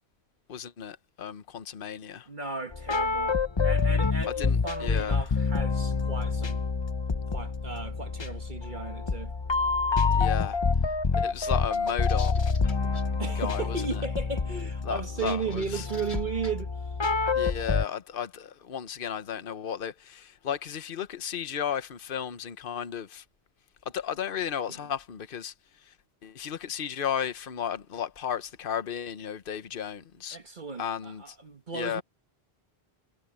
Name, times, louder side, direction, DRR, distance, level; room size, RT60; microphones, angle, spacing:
voice 1, 0.5-2.3 4.3-5.2 10.1-10.6 11.2-12.4 13.4-14.0 14.8-15.8 17.3-23.2 23.9-25.5 26.2-30.4 30.8-31.4 31.7-32.0, left 8 dB, 60° left, 1.1 m, -34 dB
voice 2, 2.3-6.7 7.3-9.3 13.2-16.7 24.7-24.9 30.3-32.0, right 4 dB, 50° right, 1.5 m, -35 dB
sound 1, 2.7-17.9, left 4 dB, 30° left, 0.7 m, -27 dB
sound 2, 11.9-13.0 15.0-16.5, left 2 dB, 90° left, 2.6 m, -46 dB
omnidirectional pair, 1.1 m